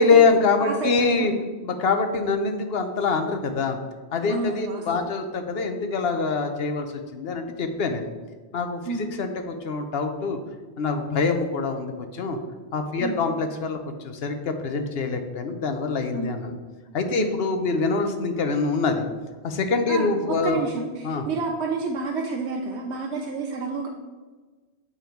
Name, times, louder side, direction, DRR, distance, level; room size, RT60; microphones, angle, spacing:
voice 1, 0.0-1.3 1.6-3.8 4.1-6.9 7.1-8.1 8.5-10.4 10.8-12.4 12.7-16.5 16.9-19.0 19.4-20.6 21.0-21.3, left 4 dB, 65° left, 6 dB, 1.0 m, -24 dB
voice 2, 0.6-1.3 4.3-5.1 8.8-9.1 13.0-13.2 16.1-16.3 17.1-17.4 19.9-23.9, right 4 dB, 80° right, 1 dB, 1.0 m, -30 dB
7.4 x 5.2 x 4.5 m, 1.3 s
omnidirectional pair, 1.1 m